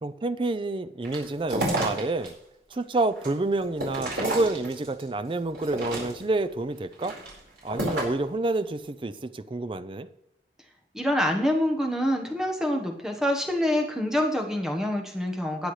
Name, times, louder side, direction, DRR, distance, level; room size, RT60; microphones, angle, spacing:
voice 1, 0.0-2.3 2.7-7.1 7.6-10.1, right 2 dB, 30° right, 14 dB, 0.4 m, -28 dB
sound 1, 1.0-2.3 2.7-5.0 5.5-6.4 6.9-8.3, right 1 dB, 80° right, 4.6 m, -31 dB
voice 2, 10.9-15.7, left 1 dB, 5° right, 2 dB, 1.1 m, -26 dB
18.5 x 7.9 x 3.2 m, 0.82 s
head